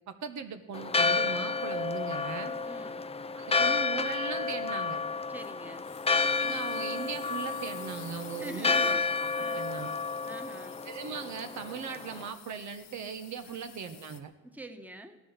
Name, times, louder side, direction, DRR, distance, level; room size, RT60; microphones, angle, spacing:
voice 1, 0.1-2.6 3.4-5.0 6.4-8.9 9.5-10.0 10.8-14.3, right 6 dB, 70° right, 7 dB, 1.5 m, -39 dB
Church bell, 0.7-12.3, left 4 dB, 20° left, 0.6 m, -31 dB
voice 2, 2.6-3.0 5.3-5.9 8.3-9.1 9.4-9.6 10.2-10.8 13.4-13.7 14.4-15.2, right 1 dB, 5° right, 6 dB, 1.4 m, -45 dB
sound 1, 5.4-14.2, left 9 dB, 70° left, 1.5 m, -52 dB
16.0 x 11.0 x 7.6 m, 1.0 s
cardioid pair, 90°, 30 cm